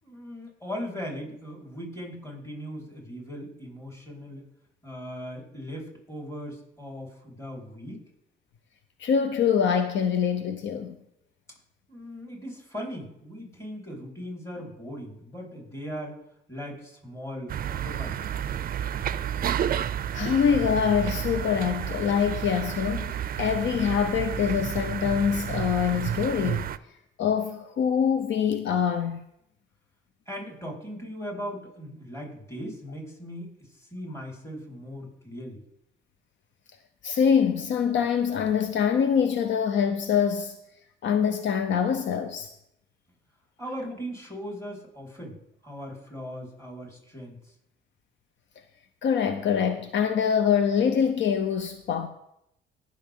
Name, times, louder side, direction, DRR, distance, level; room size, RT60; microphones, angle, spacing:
voice 1, 0.0-4.4 4.8-8.0 11.9-16.2 16.5-18.4 30.3-35.6 43.6-47.5, equal, 15° left, 4.3 m, -39 dB
voice 2, 9.0-11.0 20.1-26.7 27.2-29.2 37.0-40.6 41.0-42.5 49.0-52.1, left 7 dB, 70° left, 0.7 m, -24 dB
sound 1, 17.5-26.8, right 9 dB, 45° right, 0.4 m, -31 dB
19.0 x 6.4 x 3.7 m
cardioid pair, 90°, 20 cm